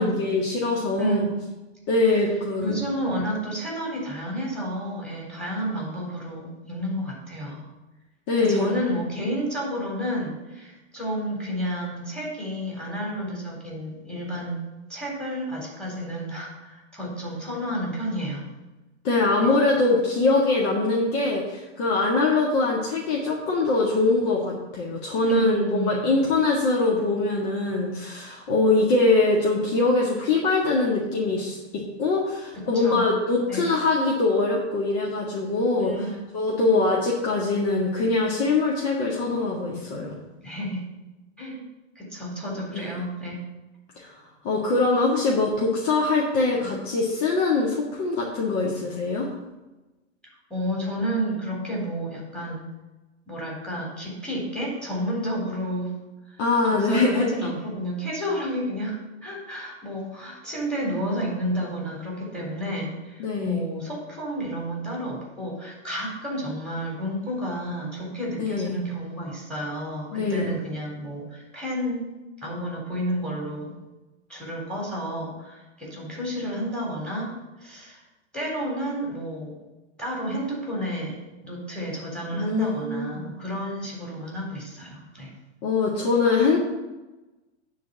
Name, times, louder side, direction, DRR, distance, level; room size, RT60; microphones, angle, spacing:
voice 1, 0.0-1.3 1.9-2.8 8.3-8.7 19.0-35.9 36.3-40.1 42.7-42.8 44.0-44.1 44.4-49.3 56.4-57.3 63.2-63.6 68.4-68.8 70.1-70.5 82.3-83.3 85.6-86.6, left 3 dB, 45° left, -3 dB, 1.8 m, -23 dB
voice 2, 1.0-1.5 2.1-2.3 2.6-7.6 8.4-14.6 14.9-18.4 19.4-19.5 25.3-26.2 32.7-33.1 33.5-33.7 35.8-36.8 40.4-40.8 41.4-41.6 42.0-43.4 46.6-46.8 50.5-52.6 53.3-55.9 56.3-56.4 56.8-72.1 72.4-73.7 74.3-78.0 78.3-79.6 80.0-81.2 81.4-85.3, equal, 5° left, -3 dB, 3.6 m, -31 dB
9.4 x 4.2 x 7.1 m, 1.1 s
hypercardioid pair, 115°, 35 cm